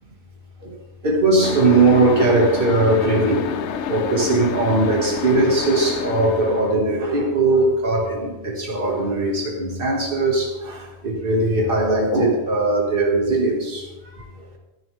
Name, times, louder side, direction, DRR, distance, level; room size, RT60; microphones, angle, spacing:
voice 1, 1.0-13.9, right 2 dB, 50° right, -1 dB, 2.4 m, -19 dB
sound 1, 1.4-6.8, left 8 dB, 80° left, 1.0 m, -28 dB
14.5 x 10.0 x 3.5 m, 1.1 s
omnidirectional pair, 1.2 m